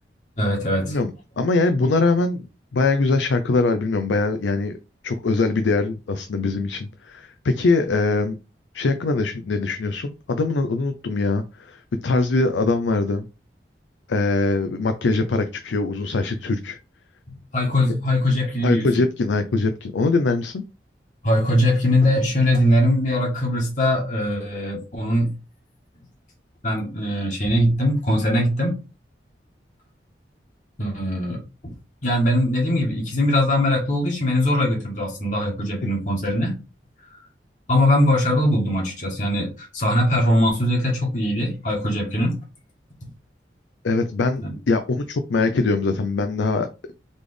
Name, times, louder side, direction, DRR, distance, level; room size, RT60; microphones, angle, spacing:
voice 1, 0.4-1.0 17.3-18.9 21.2-25.3 26.6-28.7 30.8-31.8 32.0-36.5 37.7-42.4 43.0-43.1 44.4-44.5, left 1 dB, 45° left, -1 dB, 1.3 m, -21 dB
voice 2, 1.4-2.5 2.7-4.7 5.0-8.4 8.7-13.3 14.1-16.8 18.6-20.6 43.8-46.7, left 3 dB, 85° left, 8 dB, 0.5 m, -22 dB
4.1 x 3.2 x 3.3 m, 0.31 s
head